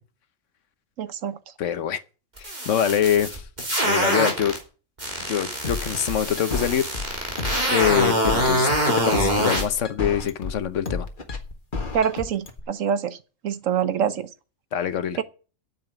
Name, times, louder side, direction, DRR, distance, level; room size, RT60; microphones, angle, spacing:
voice 1, 1.0-1.4 11.9-13.2 13.4-14.3 15.2-15.3, right 8 dB, 75° right, 1.2 m, -25 dB
voice 2, 1.6-2.0 2.4-3.4 3.8-4.5 5.3-7.3 7.7-11.1 14.7-15.2, left 9 dB, 70° left, 1.2 m, -25 dB
sound 1, 2.4-4.6 5.0-9.6, right 1 dB, 35° right, 3.5 m, -24 dB
sound 2, 5.6-12.6, left 4 dB, 40° left, 1.7 m, -31 dB
9.1 x 7.4 x 8.9 m
omnidirectional pair, 1.4 m